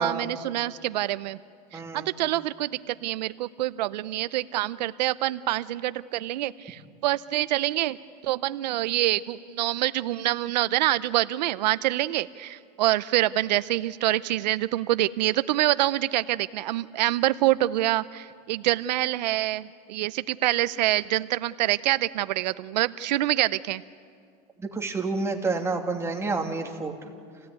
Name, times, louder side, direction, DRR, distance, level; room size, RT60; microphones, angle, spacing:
voice 1, 0.0-1.4 1.7-8.0 8.2-23.8, right 15 dB, 90° right, 16 dB, 0.6 m, -26 dB
voice 2, 1.7-2.1 24.6-26.9, right 3 dB, 10° right, 2 dB, 2.6 m, -29 dB
28.5 x 16.5 x 9.5 m, 2.2 s
supercardioid pair, 125°, 21 cm